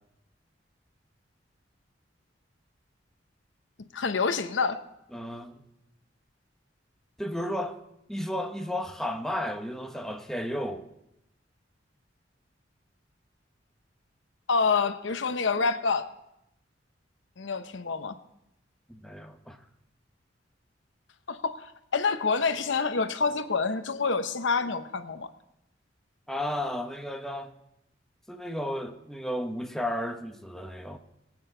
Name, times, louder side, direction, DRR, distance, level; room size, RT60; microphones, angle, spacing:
voice 1, 3.9-4.8 14.5-16.1 17.4-18.2 21.3-25.3, left 4 dB, 85° left, 0.8 m, -27 dB
voice 2, 5.1-5.6 7.2-7.8 8.1-10.9 18.9-19.6 26.3-27.6 28.3-31.0, left 1 dB, 5° left, 0.9 m, -33 dB
21.0 x 8.7 x 3.8 m
head